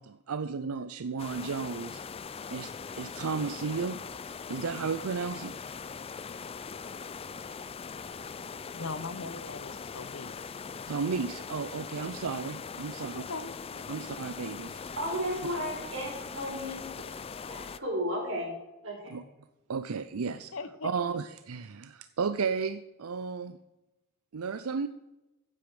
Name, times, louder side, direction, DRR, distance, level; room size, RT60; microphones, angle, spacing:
voice 1, 0.0-2.0 2.5-2.7 3.0-4.0 4.5-5.5 10.9-13.2 13.9-14.8 19.1-19.2 19.7-20.5 20.8-23.6 24.3-24.9, right 5 dB, 90° right, 12 dB, 0.5 m, -33 dB
sound 1, 1.2-17.8, left 5 dB, 25° left, 0.4 m, -41 dB
voice 2, 8.7-10.5 13.0-14.2 20.3-20.9, left 3 dB, 65° left, 12 dB, 0.9 m, -41 dB
voice 3, 15.0-16.8 17.1-18.5 18.8-19.2, equal, 65° right, -1 dB, 4.9 m, -34 dB
15.0 x 8.4 x 5.1 m, 0.99 s
head